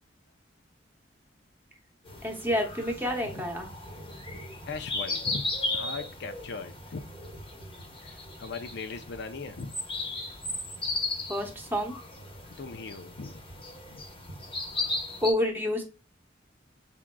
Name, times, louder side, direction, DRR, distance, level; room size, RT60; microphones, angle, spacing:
sound 1, 2.1-15.3, left 2 dB, 30° left, 1.0 m, -36 dB
voice 1, 2.2-3.7 11.3-11.9 15.2-15.8, left 1 dB, 10° right, 1.0 m, -28 dB
voice 2, 4.7-7.0 8.0-9.8 12.5-13.4 13.9-14.0, left 4 dB, 65° left, 0.5 m, -39 dB
6.0 x 3.6 x 2.2 m
head